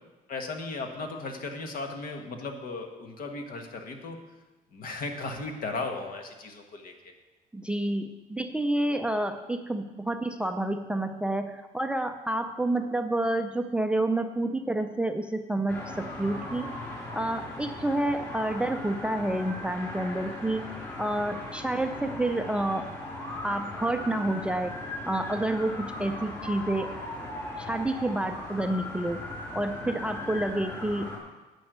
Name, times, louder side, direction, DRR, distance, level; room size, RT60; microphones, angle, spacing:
voice 1, 0.3-4.2 4.7-7.1, left 3 dB, 55° left, 4 dB, 1.6 m, -36 dB
voice 2, 7.5-16.7 17.1-20.6 21.0-22.9 23.4-24.8 25.0-26.9 27.6-29.2 29.5-31.2, right 1 dB, 5° right, 7 dB, 0.5 m, -29 dB
sound 1, 15.7-31.2, left 1 dB, 15° left, 3.4 m, -38 dB
10.0 x 5.3 x 8.1 m, 1.1 s
cardioid pair, 110°, 17 cm